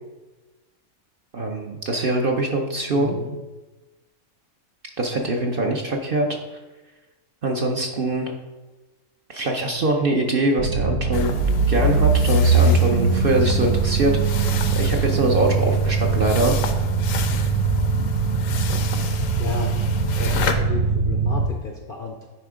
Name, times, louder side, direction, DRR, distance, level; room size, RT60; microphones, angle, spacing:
voice 1, 1.3-3.2 5.0-6.3 7.4-8.3 9.3-11.4 11.7-14.5 14.7-16.5, right 2 dB, 50° right, 1 dB, 0.7 m, -23 dB
voice 2, 2.9-3.4 19.0-19.7 20.2-22.3, left 5 dB, 55° left, 2 dB, 0.6 m, -32 dB
sound 1, 10.6-21.5, right 4 dB, 85° right, 1.1 m, -21 dB
sound 2, 11.1-20.5, left 7 dB, 70° left, 1.0 m, -32 dB
9.3 x 3.5 x 4.9 m, 1.2 s
omnidirectional pair, 1.5 m